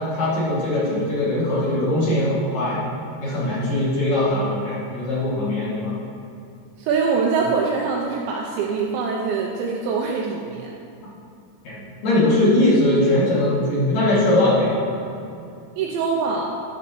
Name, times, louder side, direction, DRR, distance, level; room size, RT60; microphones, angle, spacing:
voice 1, 0.0-2.8 3.2-6.0 11.6-14.8, left 1 dB, 50° left, -9 dB, 3.2 m, -21 dB
voice 2, 6.8-10.7 15.8-16.5, right 5 dB, 85° right, -1 dB, 2.6 m, -23 dB
12.5 x 4.1 x 7.0 m, 2.6 s
omnidirectional pair, 5.8 m